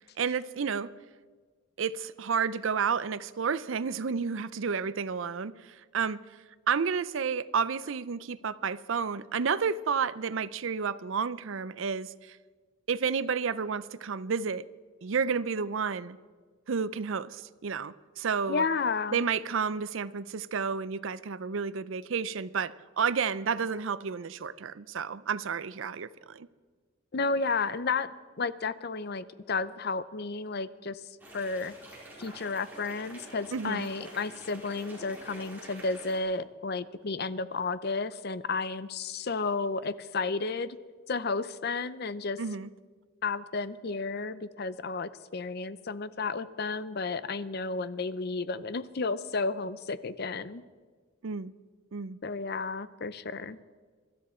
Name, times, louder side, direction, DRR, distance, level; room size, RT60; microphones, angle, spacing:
voice 1, 0.2-0.9 1.8-6.2 6.7-12.4 12.9-14.6 15.0-16.2 16.7-18.6 19.1-26.5 33.5-33.9 42.4-42.7 51.2-51.5 51.9-52.2, right 6 dB, 70° right, 0.5 m, -31 dB
voice 2, 18.5-19.2 27.1-28.1 28.4-31.0 31.3-31.7 32.2-40.8 41.1-42.4 43.2-50.6 52.2-53.6, left 4 dB, 50° left, 0.6 m, -32 dB
sound 1, 31.2-36.2, right 1 dB, 10° right, 4.5 m, -48 dB
24.0 x 13.0 x 4.4 m
head